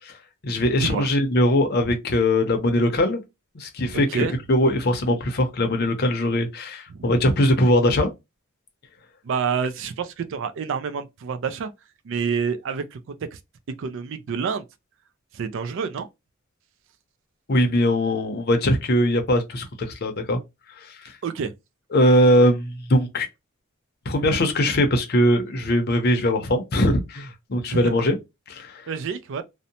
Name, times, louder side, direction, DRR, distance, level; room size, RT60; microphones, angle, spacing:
voice 1, 0.4-3.2 3.5-8.1 17.5-20.4 21.0-21.1 21.9-23.3 24.1-28.2 28.5-28.9, left 1 dB, 50° left, 0.6 m, -21 dB
voice 2, 9.2-11.7 12.0-13.0 13.3-13.4 13.8-14.6 15.3-16.1 21.2-21.5 27.7-27.9 28.9-29.4, right 6 dB, 60° right, 0.4 m, -28 dB
2.6 x 2.1 x 2.7 m
head